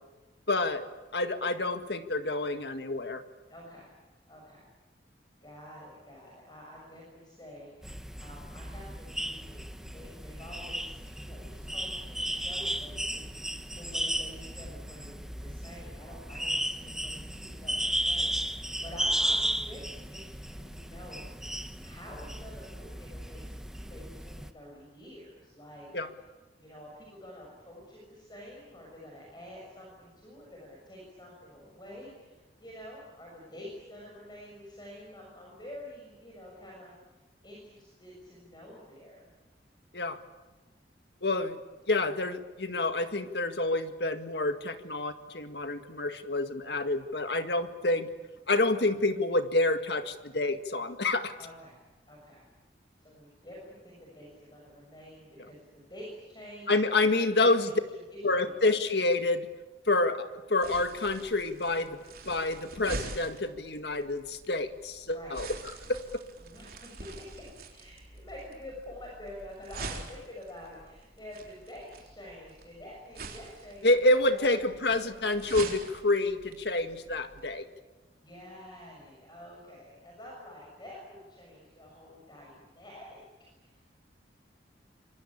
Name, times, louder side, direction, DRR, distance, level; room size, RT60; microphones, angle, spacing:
voice 1, 0.5-0.9 1.1-3.2 25.9-26.1 39.9-40.2 41.2-41.6 41.9-48.1 48.5-51.3 56.7-57.7 58.2-59.5 59.9-65.5 65.9-66.0 73.8-77.6, left 2 dB, 70° left, 8 dB, 2.0 m, -28 dB
voice 2, 3.5-3.9 4.3-4.7 5.4-21.3 21.8-25.9 26.6-36.9 37.4-39.3 51.4-51.8 52.1-52.4 53.0-56.7 57.3-57.7 58.1-58.5 65.1-65.4 66.4-74.6 78.2-83.2 83.5-84.0, left 1 dB, 25° left, -3 dB, 6.6 m, -48 dB
sound 1, 7.8-24.5, right 1 dB, 5° right, 1.0 m, -35 dB
sound 2, 60.6-77.4, right 3 dB, 55° right, 3.9 m, -45 dB
27.0 x 23.5 x 8.7 m, 1.2 s
head